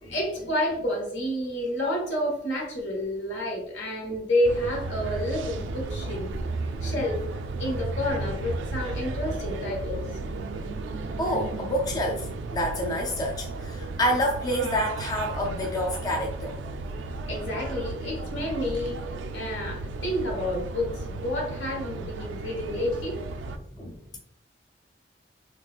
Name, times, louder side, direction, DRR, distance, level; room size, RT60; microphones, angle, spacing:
voice 1, 0.0-6.3 6.8-7.2 7.6-10.0 17.3-19.0 19.3-23.1, left 1 dB, 80° left, -1 dB, 1.2 m, -29 dB
sound 1, 4.4-23.6, right 3 dB, 80° right, 0.3 m, -34 dB
voice 2, 11.2-12.3 12.5-16.6 21.9-22.0 23.8-24.2, equal, 20° left, 0 dB, 0.4 m, -28 dB
3.8 x 2.3 x 2.4 m, 0.74 s
head